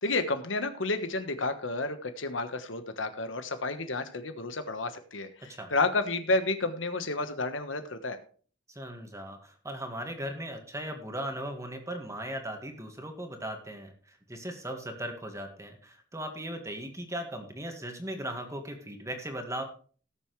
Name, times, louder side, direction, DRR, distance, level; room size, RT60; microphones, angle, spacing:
voice 1, 0.0-8.2, left 3 dB, 85° left, 9 dB, 1.3 m, -31 dB
voice 2, 8.7-19.6, right 1 dB, 15° right, 4 dB, 1.9 m, -38 dB
18.5 x 7.0 x 3.2 m, 0.42 s
head